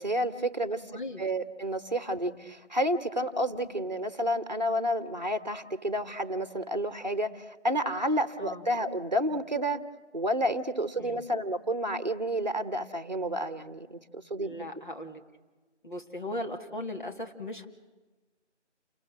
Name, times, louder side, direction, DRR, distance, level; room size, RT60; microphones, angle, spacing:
voice 1, 0.0-0.8 1.2-9.8 10.1-14.5, equal, 35° right, 11 dB, 1.2 m, -30 dB
voice 2, 0.9-1.2 2.3-2.5 8.4-8.7 11.0-11.2 14.4-15.2 15.8-17.7, left 1 dB, 40° left, 3 dB, 2.3 m, -38 dB
29.5 x 21.0 x 7.5 m, 1.2 s
figure-of-eight pair, 175°, 36 cm